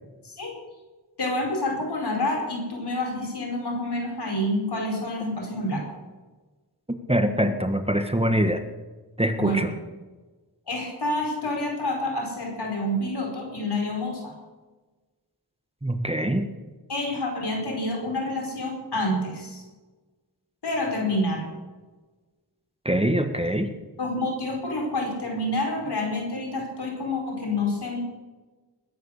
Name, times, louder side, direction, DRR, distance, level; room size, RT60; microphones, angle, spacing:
voice 1, 1.2-5.9 9.4-9.7 10.7-14.3 16.9-19.6 20.6-21.5 24.0-28.0, left 1 dB, 75° left, 0 dB, 4.9 m, -28 dB
voice 2, 7.1-8.6 9.2-9.7 15.8-16.5 22.8-23.8, equal, 15° right, 8 dB, 1.5 m, -23 dB
21.0 x 9.4 x 6.6 m, 1.3 s
cardioid pair, 45°, 40 cm